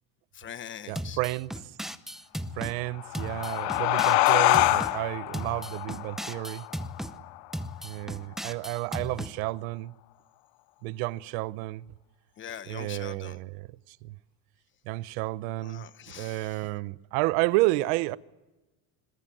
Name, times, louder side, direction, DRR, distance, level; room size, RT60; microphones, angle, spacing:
voice 1, 0.3-1.2 12.4-13.4 15.6-16.7, left 9 dB, 30° left, 1.2 m, -43 dB
voice 2, 0.9-1.5 2.6-6.7 7.8-9.9 10.8-11.9 12.7-14.2 14.8-15.8 16.2-18.2, right 19 dB, 85° right, 1.0 m, -31 dB
sound 1, 1.0-2.8 3.1-5.0 5.3-7.1 7.5-9.3, equal, ahead, 0.8 m, -36 dB
sound 2, 2.9-8.0, left 19 dB, 60° left, 0.9 m, -26 dB
26.0 x 21.5 x 9.2 m
cardioid pair, 160°, 40 cm